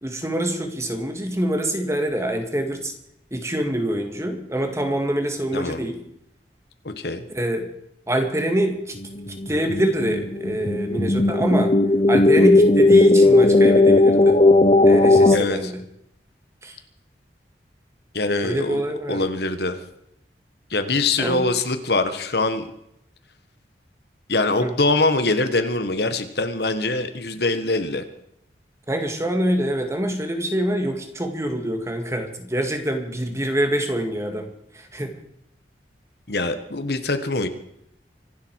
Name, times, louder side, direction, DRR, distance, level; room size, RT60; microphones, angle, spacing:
voice 1, 0.0-2.9 3.3-6.0 7.3-7.7 8.1-9.0 9.5-11.8 12.1-14.4 14.8-15.8 16.6-16.8 18.4-19.2 21.2-21.5 24.6-24.7 28.9-35.2, right 1 dB, 15° right, 6 dB, 2.0 m, -25 dB
voice 2, 5.5-5.9 6.8-7.2 15.3-15.7 18.1-18.8 19.1-19.8 20.7-22.7 24.3-28.0 36.3-37.5, left 2 dB, 65° left, 9 dB, 1.6 m, -23 dB
sound 1, 9.0-15.4, left 2 dB, 35° left, 1.1 m, -16 dB
25.0 x 12.0 x 4.8 m, 0.75 s
head